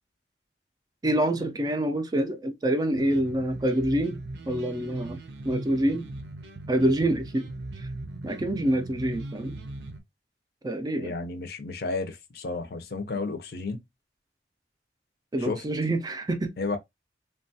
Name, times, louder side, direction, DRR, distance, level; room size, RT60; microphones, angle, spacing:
voice 1, 1.0-4.2 4.5-5.2 5.4-6.1 6.7-7.5 7.8-7.9 8.2-9.6 10.6-11.1 15.3-16.5, right 1 dB, 20° right, 0.4 m, -26 dB
sound 1, 2.9-10.0, right 2 dB, 80° right, 0.6 m, -39 dB
voice 2, 11.0-13.8 15.4-15.6 16.6-16.8, left 3 dB, 60° left, 0.5 m, -32 dB
3.1 x 2.3 x 2.6 m
head